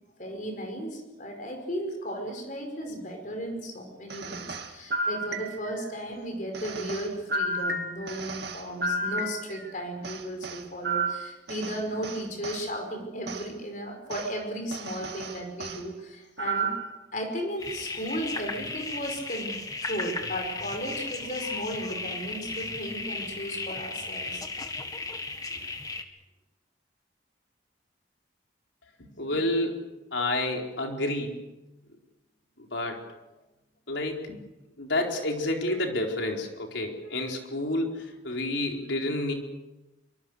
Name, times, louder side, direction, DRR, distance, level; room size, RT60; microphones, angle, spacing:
voice 1, 0.2-16.7 17.1-19.6 19.8-24.4, equal, 45° left, 4 dB, 5.2 m, -35 dB
sound 1, 4.1-5.9 6.5-9.7 10.0-12.6 13.3-13.5 14.1-14.3 14.7-15.8 16.4-17.0, right 2 dB, 60° right, 2.2 m, -32 dB
sound 2, 17.6-26.0, left 3 dB, 20° left, 1.8 m, -35 dB
voice 2, 29.2-29.8 30.1-31.5 32.7-33.0 33.9-34.4 34.8-39.3, left 1 dB, 75° left, 1 dB, 4.5 m, -29 dB
24.5 x 24.5 x 6.6 m, 1.1 s
head